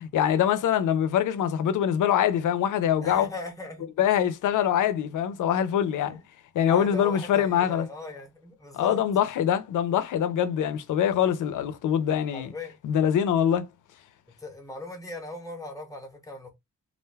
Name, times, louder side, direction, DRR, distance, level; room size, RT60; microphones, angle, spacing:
voice 1, 0.0-3.3 4.0-6.2 6.5-7.9 8.7-12.5 12.8-13.7, left 9 dB, 80° left, 0.5 m, -24 dB
voice 2, 3.0-3.9 6.0-6.2 6.7-9.0 12.3-12.7 14.4-16.5, left 2 dB, 10° left, 0.7 m, -38 dB
2.4 x 2.2 x 3.2 m
wide cardioid pair, 160°, 30 cm